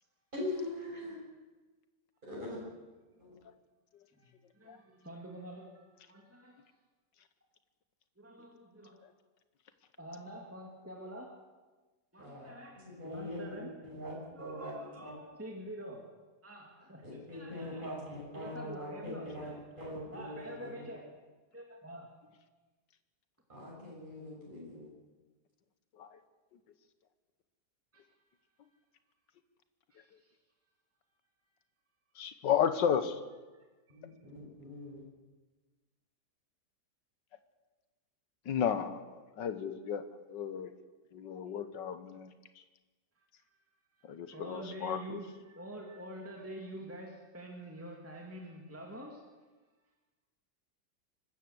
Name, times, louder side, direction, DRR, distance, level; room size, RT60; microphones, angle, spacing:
voice 1, 0.3-1.2 2.3-2.6 3.2-3.3 12.2-12.5 12.7-15.1 17.0-20.9 23.5-24.9 33.9-35.0, left 1 dB, 25° right, -5 dB, 7.3 m, -42 dB
voice 2, 4.2-6.6 8.2-9.1 10.0-11.3 12.1-13.7 14.3-16.0 16.4-18.0 18.3-19.5 19.9-21.1 21.5-22.1 27.9-28.0 29.9-30.3 44.0-49.2, right 1 dB, 10° right, 0 dB, 2.2 m, -47 dB
voice 3, 32.2-33.2 38.5-40.0 40.3-40.7 41.1-42.3 44.0-45.2, left 8 dB, 90° left, 11 dB, 1.8 m, -33 dB
25.0 x 13.0 x 8.0 m, 1.3 s
omnidirectional pair, 1.9 m